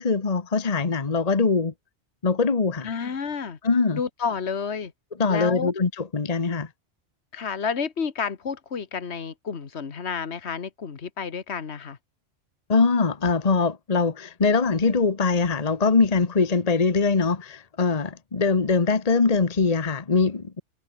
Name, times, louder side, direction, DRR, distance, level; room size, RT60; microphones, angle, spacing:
voice 1, 0.0-1.7 2.2-2.9 3.6-4.0 5.2-6.7 12.7-20.6, left 4 dB, 35° left, 1.3 m, -22 dB
voice 2, 2.8-3.6 3.9-4.9 5.3-5.7 7.3-12.0, left 6 dB, 70° left, 1.7 m, -30 dB
omnidirectional pair, 1.2 m